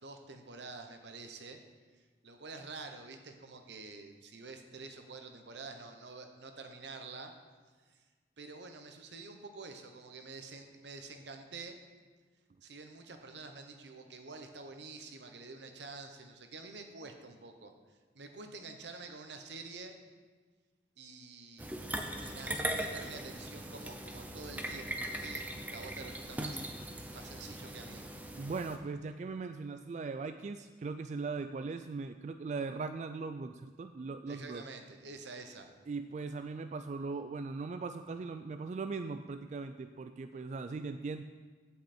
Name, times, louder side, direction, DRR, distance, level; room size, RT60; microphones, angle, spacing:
voice 1, 0.0-1.6 2.0-7.3 7.9-8.0 8.4-11.8 12.6-17.7 18.1-20.0 21.0-21.8 22.2-26.6 27.1-28.0 34.3-35.7, right 3 dB, 80° right, 6 dB, 1.0 m, -48 dB
sound 1, 21.6-28.8, right 1 dB, 10° right, 0.7 m, -40 dB
voice 2, 28.3-34.6 35.9-41.2, right 4 dB, 40° right, 9 dB, 0.3 m, -39 dB
15.5 x 5.7 x 4.4 m, 1.4 s
head